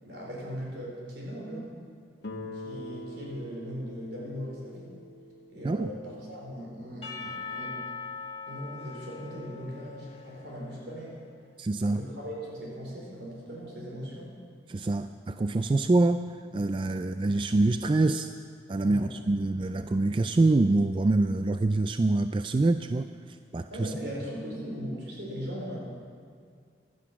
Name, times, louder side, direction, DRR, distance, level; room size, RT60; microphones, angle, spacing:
voice 1, 0.0-1.7 2.2-4.9 5.5-7.8 8.5-11.2 11.9-14.3 18.8-19.1 23.7-25.8, equal, 75° right, -3 dB, 4.6 m, -39 dB
Guitar, 2.2-7.0, left 1 dB, 80° left, 1.4 m, -44 dB
Percussion / Church bell, 7.0-11.1, left 4 dB, 35° left, 1.7 m, -41 dB
voice 2, 11.6-12.0 14.7-18.3 18.7-23.9, right 2 dB, 30° right, 9 dB, 0.3 m, -25 dB
16.0 x 11.5 x 5.9 m, 2.2 s
head